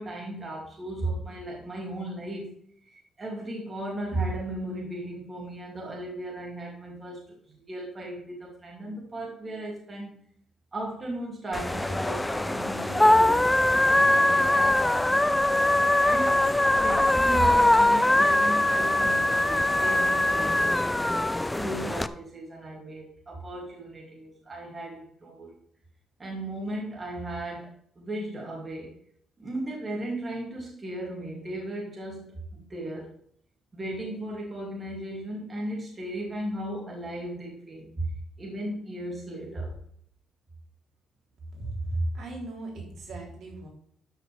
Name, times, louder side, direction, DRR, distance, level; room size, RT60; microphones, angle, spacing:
voice 1, 0.0-2.5 2.8-10.2 10.7-15.3 16.0-20.7 21.5-25.5 26.2-28.9 29.4-33.1 33.7-38.1 38.4-39.8, right 1 dB, 25° right, -3 dB, 2.8 m, -36 dB
sound 1, 11.5-22.1, left 1 dB, 10° left, 0.4 m, -22 dB
voice 2, 41.5-43.7, right 1 dB, 60° right, -1 dB, 3.6 m, -34 dB
12.5 x 6.3 x 3.5 m, 0.64 s
cardioid pair, 130°, 0 cm